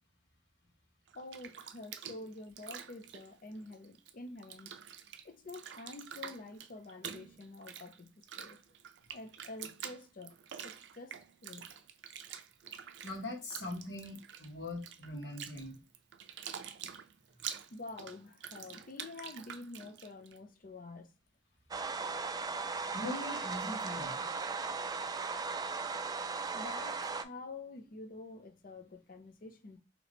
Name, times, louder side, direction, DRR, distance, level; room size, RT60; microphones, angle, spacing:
voice 1, 1.1-4.8 5.2-8.6 9.1-10.4 10.6-11.7 17.7-21.1 26.5-29.8, left 2 dB, 50° left, 0.6 m, -48 dB
Bathtub (filling or washing), 1.1-4.1 4.4-20.4, right 8 dB, 85° right, 0.4 m, -47 dB
voice 2, 13.0-15.8 22.9-24.3, left 1 dB, 80° left, 1.6 m, -41 dB
sound 1, 21.7-27.2, right 4 dB, 20° right, 0.3 m, -37 dB
3.1 x 2.9 x 4.1 m
head